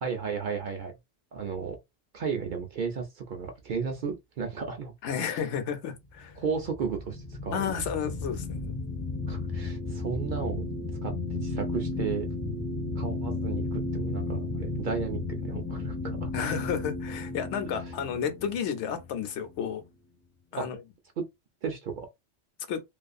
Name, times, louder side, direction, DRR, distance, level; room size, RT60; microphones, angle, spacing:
voice 1, 0.0-0.9 1.3-1.8 2.1-4.9 5.3-5.4 6.4-7.8 9.3-10.7 11.0-12.3 13.0-16.3 17.6-17.9 20.6-20.7 21.2-21.3 21.6-22.1, right 6 dB, 60° right, 0.5 m, -34 dB
voice 2, 5.0-6.4 7.5-8.8 16.3-19.8 20.5-20.8 22.7-22.8, left 7 dB, 85° left, 0.9 m, -32 dB
sound 1, 6.2-19.8, left 3 dB, 25° left, 0.3 m, -34 dB
2.4 x 2.3 x 2.5 m
omnidirectional pair, 1.2 m